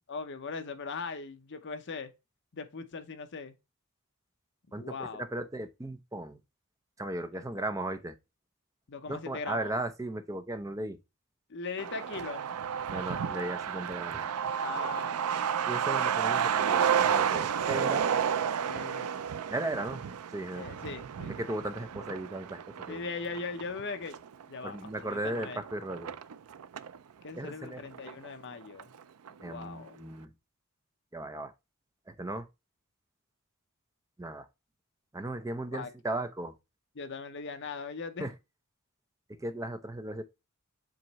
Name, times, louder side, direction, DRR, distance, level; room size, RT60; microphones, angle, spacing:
voice 1, 0.1-2.1 2.5-3.5 4.7-5.2 7.3-7.6 8.9-9.7 11.5-12.6 14.6-15.2 18.6-19.1 20.5-21.4 22.9-24.2 24.5-25.6 27.2-28.9 29.4-30.0 35.7-35.9 37.0-38.3, left 4 dB, 55° left, 0.8 m, -40 dB
voice 2, 4.7-6.4 7.0-8.2 9.1-11.0 12.9-14.3 15.7-18.1 19.5-20.9 21.4-23.1 24.6-26.2 27.3-27.8 29.4-30.3 31.1-31.5 32.1-32.5 34.2-34.5 35.1-36.6 38.2-38.3 39.3-40.2, right 1 dB, 15° right, 0.6 m, -36 dB
Truck, 11.8-27.0 27.3-27.4 27.6-28.5 28.8-28.9 29.3-29.6, right 8 dB, 80° right, 0.4 m, -31 dB
7.7 x 3.0 x 4.1 m
head